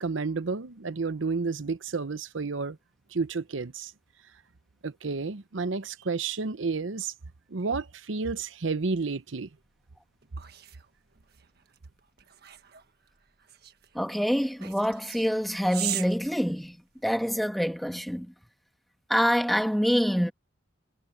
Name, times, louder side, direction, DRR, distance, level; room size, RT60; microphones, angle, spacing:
voice 1, 0.0-2.8 3.1-3.9 4.8-7.1 7.5-9.5, right 4 dB, 80° right, 0.8 m, -31 dB
sound 1, 9.7-17.2, right 12 dB, 55° right, 1.5 m, -40 dB
voice 2, 13.9-16.8 17.0-18.3 19.1-20.3, equal, ahead, 1.4 m, -26 dB
head